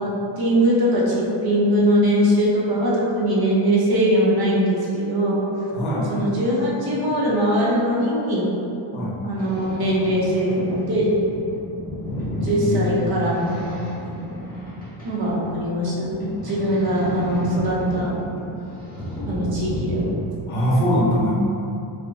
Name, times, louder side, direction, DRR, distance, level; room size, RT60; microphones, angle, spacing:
voice 1, 0.0-5.5 6.1-8.5 9.2-11.1 12.3-13.8 15.0-18.2 19.3-20.1, equal, 50° right, -5 dB, 0.8 m, -21 dB
voice 2, 5.7-6.1 8.9-9.2 12.3-13.1 20.5-21.3, equal, 80° left, -6 dB, 1.2 m, -22 dB
Boat Water vehicle, 9.4-20.2, left 1 dB, 20° left, 1.2 m, -32 dB
5.8 x 2.2 x 2.6 m, 2.7 s
wide cardioid pair, 165°, 48 cm